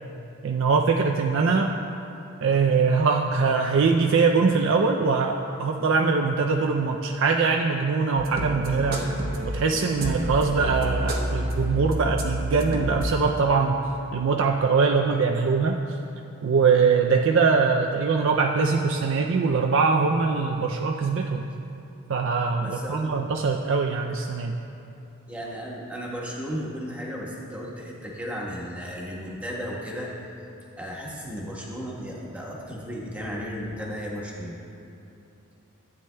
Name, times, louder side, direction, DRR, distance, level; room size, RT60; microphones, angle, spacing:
voice 1, 0.4-1.7 2.4-9.1 9.5-13.8 14.1-16.0 16.4-21.5 22.1-24.6, right 4 dB, 60° right, 2 dB, 0.4 m, -22 dB
sound 1, 8.2-13.1, right 1 dB, 45° right, 0.9 m, -29 dB
voice 2, 22.6-23.2 25.3-30.1 30.8-34.5, equal, 5° right, -4 dB, 1.2 m, -34 dB
14.5 x 9.0 x 2.2 m, 2.8 s
head